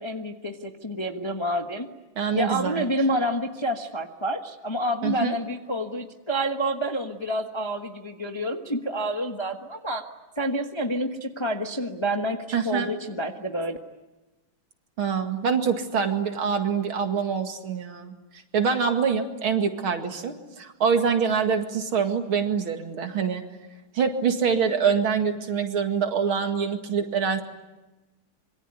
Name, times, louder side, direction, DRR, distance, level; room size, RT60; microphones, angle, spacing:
voice 1, 0.0-1.9 2.3-10.1 10.4-13.8, equal, 15° left, 4 dB, 1.1 m, -28 dB
voice 2, 2.2-2.8 5.0-5.3 12.5-12.9 15.0-18.2 18.5-23.4 23.9-27.4, right 6 dB, 70° right, 5 dB, 2.9 m, -25 dB
26.0 x 23.0 x 9.7 m, 1.1 s
omnidirectional pair, 2.4 m